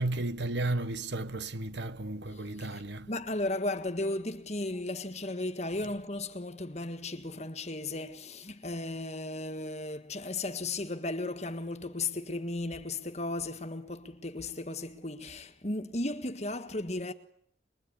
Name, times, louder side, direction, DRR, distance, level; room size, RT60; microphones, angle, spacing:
voice 1, 0.0-3.2, right 2 dB, 65° right, 1.3 m, -33 dB
voice 2, 3.1-17.1, left 2 dB, 35° left, 1.7 m, -35 dB
25.0 x 22.0 x 9.9 m
head